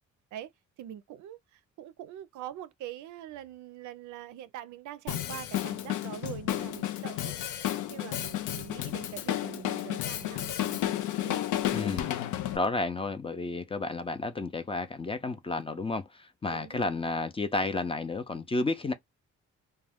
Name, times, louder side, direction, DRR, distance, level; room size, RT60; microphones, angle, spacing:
voice 1, 0.8-1.4 1.8-7.3 7.9-11.4 16.5-16.9, right 11 dB, 75° right, 0.5 m, -43 dB
Drum kit, 5.1-12.6, left 12 dB, 85° left, 0.5 m, -32 dB
voice 2, 11.7-12.2 12.5-18.9, left 3 dB, 20° left, 0.4 m, -31 dB
2.4 x 2.2 x 3.3 m
cardioid pair, 90°, 30 cm